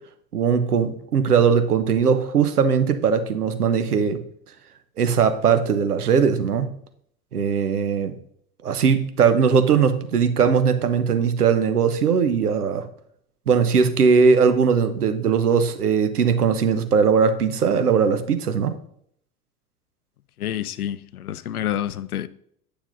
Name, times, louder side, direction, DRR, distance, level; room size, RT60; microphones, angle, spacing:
voice 1, 0.3-4.2 5.0-6.7 7.3-8.1 8.6-12.8 13.5-18.7, right 6 dB, 80° right, 0.8 m, -19 dB
voice 2, 20.4-22.3, left 11 dB, 75° left, 0.6 m, -28 dB
9.2 x 6.9 x 2.6 m
figure-of-eight pair, 80°, 45 cm